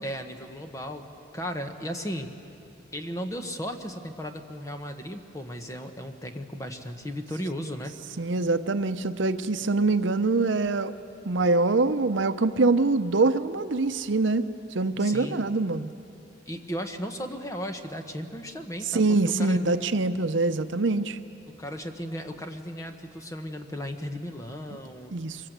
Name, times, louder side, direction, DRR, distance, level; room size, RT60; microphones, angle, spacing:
voice 1, 0.0-1.1 1.3-2.3 2.9-7.9 15.0-15.5 16.5-19.6 21.5-25.2, equal, 15° left, 5 dB, 1.2 m, -35 dB
voice 2, 8.2-10.9 11.3-14.5 14.7-15.9 18.9-21.2 25.1-25.4, right 3 dB, 75° right, 10 dB, 0.8 m, -24 dB
24.0 x 22.0 x 8.1 m, 2.7 s
head